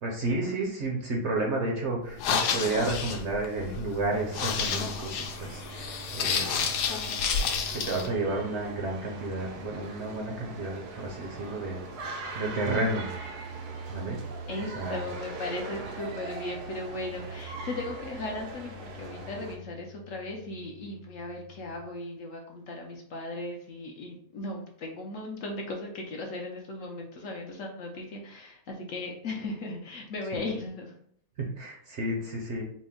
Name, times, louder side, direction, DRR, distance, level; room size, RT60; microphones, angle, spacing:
voice 1, 0.0-6.7 7.0-7.1 7.7-11.8 12.4-13.1 13.9-14.2 14.8-15.0 30.3-30.4 31.4-32.6, right 2 dB, 60° right, 0 dB, 0.8 m, -31 dB
sound 1, 2.1-8.1, left 6 dB, 90° left, 1.1 m, -30 dB
sound 2, 2.7-21.8, right 1 dB, 45° right, 0.4 m, -46 dB
sound 3, 4.1-19.6, right 4 dB, 90° right, 1.2 m, -42 dB
voice 2, 14.5-30.9, left 2 dB, 65° left, 1 dB, 0.9 m, -37 dB
4.2 x 2.1 x 3.6 m, 0.65 s
omnidirectional pair, 1.7 m